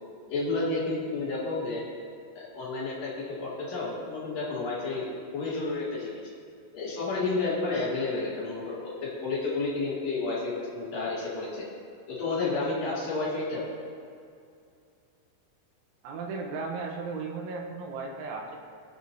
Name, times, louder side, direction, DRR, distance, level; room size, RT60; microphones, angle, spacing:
voice 1, 0.3-1.8 2.3-3.1 3.4-5.1 5.3-6.2 6.7-11.7 12.1-13.7, left 3 dB, 45° left, -7 dB, 2.5 m, -31 dB
voice 2, 16.0-18.6, right 4 dB, 75° right, 0 dB, 3.1 m, -35 dB
17.0 x 6.7 x 2.7 m, 2.4 s
omnidirectional pair, 6.0 m